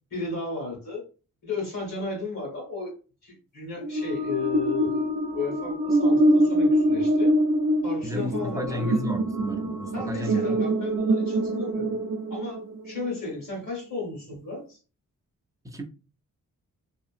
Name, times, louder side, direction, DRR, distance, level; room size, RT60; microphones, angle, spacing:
voice 1, 0.1-1.0 1.4-2.9 3.2-7.3 7.8-9.0 9.9-11.9 12.3-14.8, left 4 dB, 55° left, -2 dB, 1.3 m, -34 dB
sound 1, 3.8-13.2, right 1 dB, 85° right, 0.5 m, -24 dB
voice 2, 8.0-10.6 14.3-14.4 15.6-15.8, equal, 10° right, 3 dB, 0.3 m, -33 dB
2.8 x 2.5 x 2.4 m, 0.35 s
wide cardioid pair, 170°, 33 cm